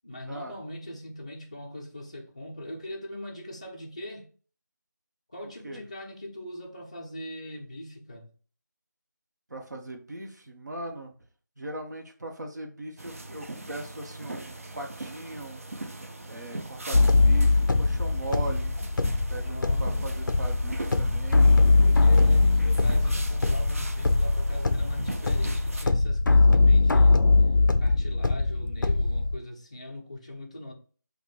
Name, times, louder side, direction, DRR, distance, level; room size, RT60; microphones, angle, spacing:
voice 1, 0.0-4.3 5.3-8.3 19.3-20.3 21.7-27.3 27.8-30.7, left 1 dB, 20° left, 0.4 m, -41 dB
voice 2, 5.4-5.8 9.5-11.1 11.6-15.6 16.3-18.8 19.3-21.6, right 2 dB, 60° right, 0.9 m, -39 dB
sound 1, 13.0-25.9, right 2 dB, 45° right, 0.4 m, -40 dB
sound 2, 16.9-29.4, left 3 dB, 85° left, 0.4 m, -21 dB
3.0 x 2.2 x 4.1 m
figure-of-eight pair, 170°, 10 cm